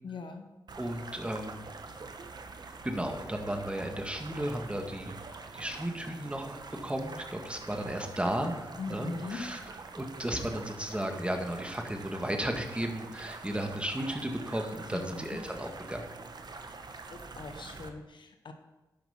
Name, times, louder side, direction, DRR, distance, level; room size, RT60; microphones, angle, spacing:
voice 1, 0.0-0.5 8.8-9.5 14.9-15.3 17.1-18.5, left 3 dB, 70° left, 6 dB, 1.1 m, -40 dB
sound 1, 0.7-17.9, right 4 dB, 55° right, 1.0 m, -45 dB
voice 2, 0.8-1.7 2.8-16.0, right 1 dB, 15° right, 4 dB, 1.8 m, -34 dB
10.5 x 5.9 x 5.7 m, 1.0 s
supercardioid pair, 40°, 8 cm